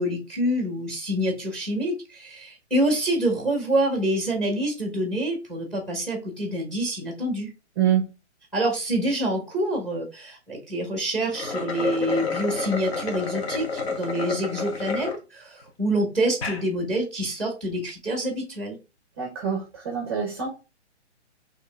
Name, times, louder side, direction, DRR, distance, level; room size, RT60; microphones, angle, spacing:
voice 1, 0.0-7.5 8.5-18.8, right 1 dB, ahead, 3 dB, 0.8 m, -26 dB
sound 1, 11.2-15.2 15.7-15.8 16.3-16.6, left 4 dB, 60° left, 1.3 m, -29 dB
voice 2, 19.2-20.5, right 9 dB, 20° right, 2 dB, 0.6 m, -25 dB
4.6 x 3.1 x 3.3 m, 0.30 s
hypercardioid pair, 155°, 35 cm